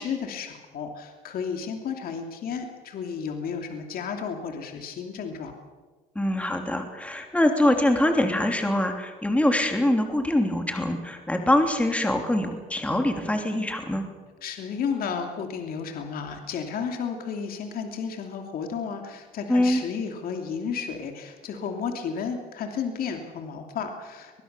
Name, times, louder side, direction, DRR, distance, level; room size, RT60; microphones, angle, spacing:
voice 1, 0.0-5.5 14.4-24.4, left 6 dB, 60° left, 4 dB, 2.9 m, -32 dB
voice 2, 6.1-14.1 19.5-19.8, left 1 dB, 10° left, 4 dB, 3.0 m, -24 dB
23.5 x 20.5 x 6.9 m, 1.4 s
cardioid pair, 110°, 17 cm